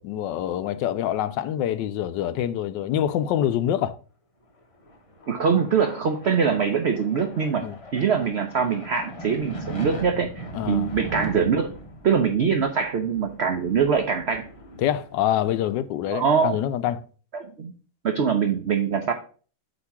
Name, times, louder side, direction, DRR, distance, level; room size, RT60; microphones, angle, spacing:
voice 1, 0.0-4.0 7.6-7.8 10.5-10.9 14.8-17.0, left 11 dB, 85° left, 1.2 m, -25 dB
sound 1, 4.6-15.9, right 1 dB, 35° left, 0.6 m, -40 dB
voice 2, 5.3-7.6 7.9-11.7 12.0-14.4 16.1-16.6 17.3-17.7 18.0-19.1, right 6 dB, 65° right, 0.6 m, -23 dB
8.0 x 2.9 x 5.7 m
omnidirectional pair, 1.9 m